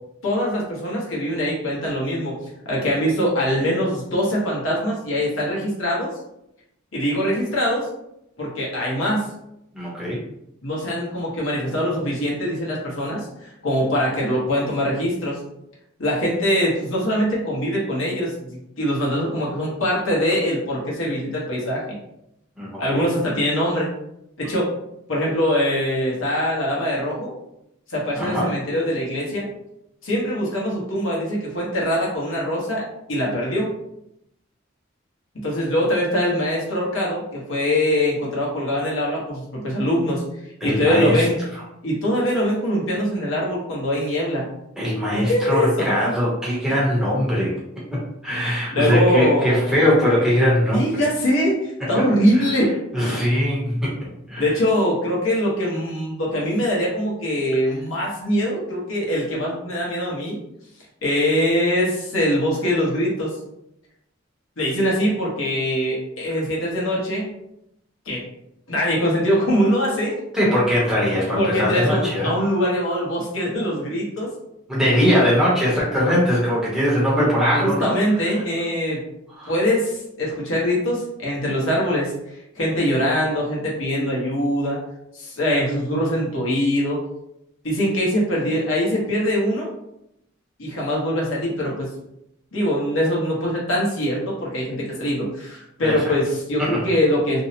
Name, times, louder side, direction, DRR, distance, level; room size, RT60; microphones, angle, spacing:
voice 1, 0.2-2.4 2.7-6.1 6.9-7.9 8.4-9.3 10.6-15.4 16.0-18.5 18.8-22.0 22.8-23.9 24.4-24.7 25.1-27.3 27.9-29.5 30.0-32.8 33.1-33.7 35.3-40.2 40.6-41.4 41.8-44.5 45.1-45.9 48.7-49.8 50.7-52.7 54.4-60.4 61.0-63.3 64.6-67.3 68.1-68.2 68.7-70.2 71.3-74.3 75.1-75.4 77.6-79.0 79.5-82.1 82.5-84.8 85.1-87.0 87.6-89.7 90.6-91.9 92.5-97.4, equal, 80° left, -4 dB, 0.9 m, -23 dB
voice 2, 9.7-10.2 22.6-23.1 28.2-28.5 40.6-41.2 44.8-47.5 48.2-51.0 52.3-52.5 52.9-54.5 70.3-72.3 74.7-78.4 79.4-79.5 95.8-96.1 96.6-96.8, equal, 5° right, -7 dB, 0.7 m, -21 dB
2.6 x 2.0 x 2.7 m, 0.80 s
head